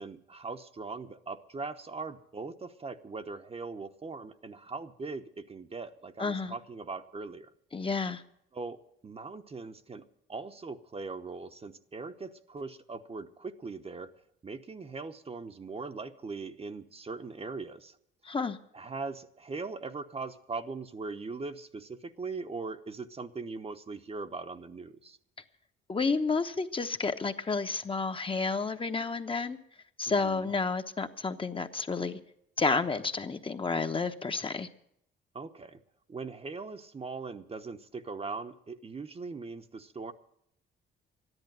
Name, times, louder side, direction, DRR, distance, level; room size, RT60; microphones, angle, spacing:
voice 1, 0.0-7.5 8.5-10.0 10.3-14.1 14.4-18.0 18.7-25.2 30.1-30.5 35.3-35.8 36.1-40.1, right 4 dB, 30° right, 8 dB, 0.9 m, -40 dB
voice 2, 6.2-6.6 7.7-8.2 18.2-18.6 25.9-29.6 30.0-32.2 32.6-34.7, left 4 dB, 25° left, 7 dB, 1.0 m, -30 dB
13.0 x 11.0 x 9.0 m, 0.74 s
cardioid pair, 90°, 20 cm